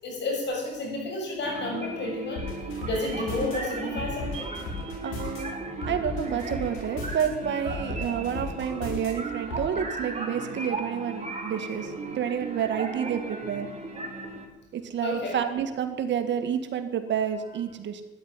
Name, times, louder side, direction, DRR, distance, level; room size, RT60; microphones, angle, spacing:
voice 1, 0.0-2.5 2.8-4.5 15.0-15.4, left 2 dB, 60° left, 1 dB, 7.4 m, -31 dB
sound 1, 1.4-14.5, right 3 dB, 35° right, 3.7 m, -36 dB
sound 2, 2.4-3.5 4.0-5.4 5.8-7.2 7.7-9.1 9.5-9.7, left 3 dB, 90° left, 6.7 m, -35 dB
voice 2, 5.0-5.6 5.9-13.7 14.7-18.0, right 8 dB, 65° right, 7 dB, 2.1 m, -29 dB
13.0 x 11.0 x 10.0 m, 1.1 s
cardioid pair, 90°, 20 cm